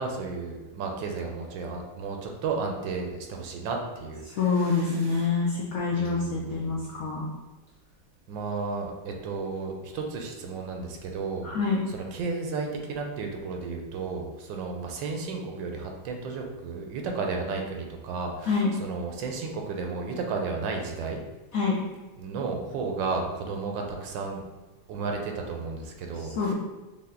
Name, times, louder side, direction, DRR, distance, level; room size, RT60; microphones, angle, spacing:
voice 1, 0.0-5.4 5.9-6.8 8.3-11.5 11.9-21.2 22.2-24.4 24.9-26.5, right 4 dB, 75° right, 2 dB, 1.3 m, -33 dB
voice 2, 4.3-7.2 11.4-11.8 18.5-18.7 21.5-21.8 26.4-26.5, left 4 dB, 70° left, -4 dB, 0.8 m, -26 dB
5.6 x 2.1 x 3.7 m, 1.2 s
omnidirectional pair, 2.1 m